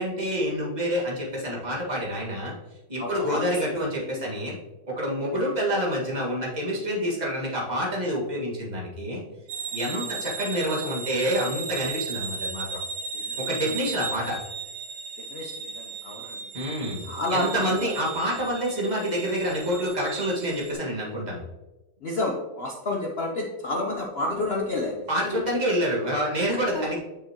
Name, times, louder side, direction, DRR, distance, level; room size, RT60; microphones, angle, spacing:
voice 1, 0.0-2.5 2.9-4.6 4.9-9.2 9.7-12.8 13.4-14.4 16.5-17.0 17.3-21.4 25.1-27.0, equal, 20° right, -4 dB, 1.8 m, -27 dB
voice 2, 3.0-3.8 4.1-4.2 9.9-10.1 13.1-13.4 15.2-16.4 17.0-17.9 22.0-25.1, left 2 dB, 90° left, -1 dB, 0.5 m, -30 dB
sound 1, 9.5-20.7, right 5 dB, 70° right, 1.9 m, -36 dB
6.7 x 6.6 x 2.9 m, 1.0 s
omnidirectional pair, 2.1 m